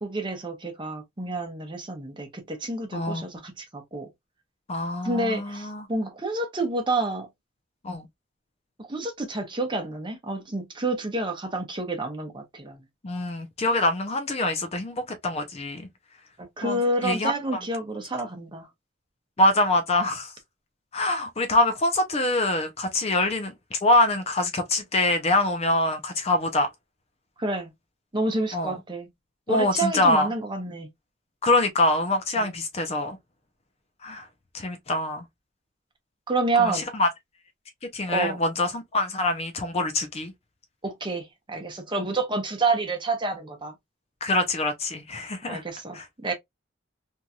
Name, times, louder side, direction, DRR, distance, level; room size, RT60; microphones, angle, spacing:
voice 1, 0.0-4.1 5.0-7.3 8.9-12.8 16.4-18.7 27.4-27.7 28.1-29.1 29.5-30.9 32.4-32.5 36.3-36.9 38.1-38.4 40.8-43.7 45.5-46.3, right 2 dB, 25° right, 0.8 m, -29 dB
voice 2, 2.9-3.2 4.7-5.9 7.8-8.1 13.0-15.9 16.6-17.6 19.4-20.3 20.9-26.7 28.5-28.8 29.5-30.3 31.4-33.2 34.0-34.3 34.5-35.3 36.6-37.1 37.9-40.3 44.2-45.6 45.9-46.0, left 2 dB, 30° left, 0.5 m, -25 dB
3.0 x 2.6 x 2.3 m
head